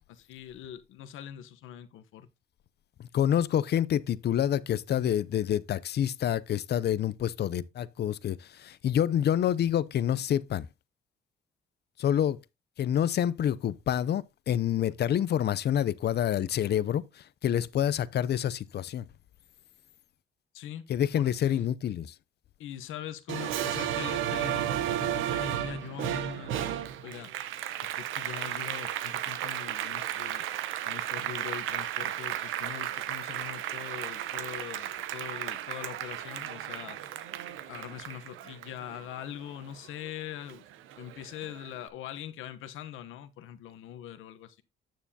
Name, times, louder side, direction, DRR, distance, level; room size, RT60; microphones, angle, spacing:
voice 1, 0.1-2.3 20.5-20.9 21.1-21.7 22.6-27.3 27.8-37.1 37.7-40.6 40.9-44.6, left 10 dB, 85° left, 1.0 m, -42 dB
voice 2, 3.0-10.7 12.0-12.4 12.8-19.0 20.9-22.1, left 10 dB, 55° left, 0.5 m, -27 dB
Applause, 23.3-40.1 40.5-41.7, right 11 dB, 90° right, 0.8 m, -34 dB
9.3 x 6.7 x 2.8 m
cardioid pair, 90°, 20 cm